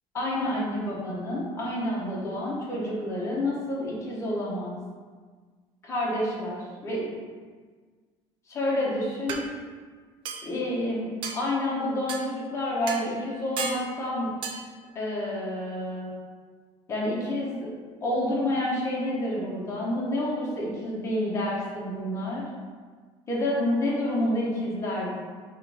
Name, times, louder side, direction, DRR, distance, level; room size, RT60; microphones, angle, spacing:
voice 1, 0.1-4.8 5.8-7.0 8.5-9.5 10.4-14.3 14.9-16.1 16.9-17.7 18.0-22.4 23.3-25.1, left 1 dB, 25° left, -5 dB, 1.1 m, -29 dB
sound 1, 8.6-8.7 9.3-9.4 10.2-10.5 11.2-11.4 12.1-12.3 12.9-13.1 13.6-13.8 14.4-14.6, right 6 dB, 45° right, 0.5 m, -33 dB
5.4 x 2.6 x 3.5 m, 1.5 s
cardioid pair, 155°, 12 cm